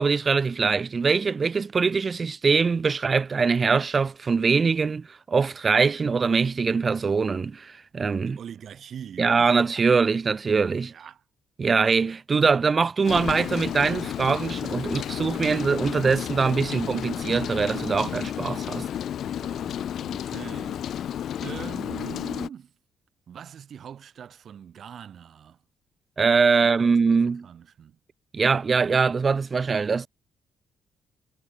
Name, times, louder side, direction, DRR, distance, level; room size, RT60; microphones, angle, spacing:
voice 1, 0.0-8.4 9.2-10.9 11.6-18.8 26.2-27.5 28.3-30.1, right 5 dB, 35° right, 0.5 m, -23 dB
voice 2, 8.1-9.3 10.8-11.2 19.2-22.7 23.3-25.6 26.6-28.0, right 8 dB, 60° right, 6.6 m, -43 dB
Rain, 13.0-22.5, left 10 dB, 65° left, 2.8 m, -32 dB
cardioid pair, 90°, 0 cm